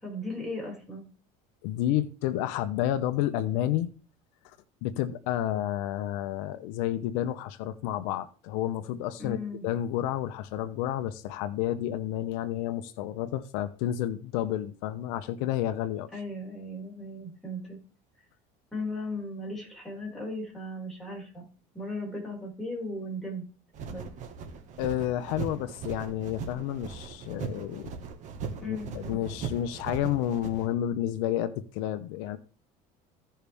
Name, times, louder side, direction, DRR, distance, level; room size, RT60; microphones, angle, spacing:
voice 1, 0.0-1.1 9.2-9.6 16.1-17.8 18.7-21.5 21.7-23.4 23.9-24.0 28.6-29.2, left 1 dB, ahead, 5.4 m, -37 dB
voice 2, 1.6-3.9 4.8-9.4 9.6-16.1 24.8-27.9 28.6-32.4, left 12 dB, 90° left, 0.8 m, -30 dB
sound 1, 23.7-30.7, right 5 dB, 45° right, 1.7 m, -39 dB
16.0 x 5.6 x 3.5 m
cardioid pair, 145°, 17 cm